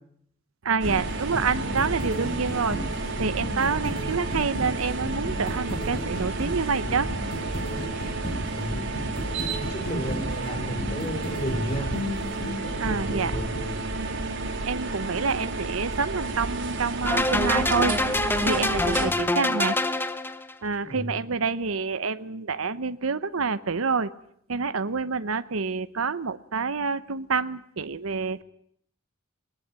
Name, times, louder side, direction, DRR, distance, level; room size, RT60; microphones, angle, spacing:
voice 1, 0.6-2.8 3.2-7.1 12.8-13.4 13.9-18.0 18.4-19.8 20.6-24.1 24.5-28.4, right 5 dB, 90° right, 13 dB, 0.9 m, -27 dB
sound 1, 0.8-13.8, equal, 50° left, 6.8 m, -34 dB
sound 2, 0.8-19.1, right 3 dB, 60° right, 4.2 m, -31 dB
voice 2, 8.5-8.8 9.7-12.0 20.8-21.0, equal, 30° left, 5 dB, 5.5 m, -33 dB
sound 3, 17.1-20.5, left 2 dB, 10° left, 0.9 m, -25 dB
20.5 x 20.5 x 9.0 m, 0.68 s
head